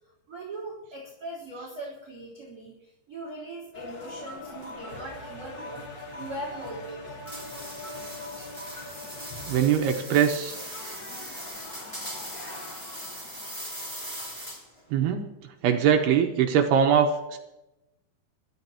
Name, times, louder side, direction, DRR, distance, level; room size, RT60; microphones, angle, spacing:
voice 1, 0.3-8.9, right 1 dB, 20° right, -3 dB, 4.1 m, -40 dB
sound 1, 3.7-13.6, left 2 dB, 70° left, 1.0 m, -43 dB
sound 2, 7.3-14.8, equal, 10° left, 1.9 m, -40 dB
voice 2, 9.5-10.6 14.9-15.3 15.6-17.4, right 8 dB, 75° right, 4 dB, 2.9 m, -22 dB
25.5 x 13.5 x 3.0 m, 0.95 s
omnidirectional pair, 4.9 m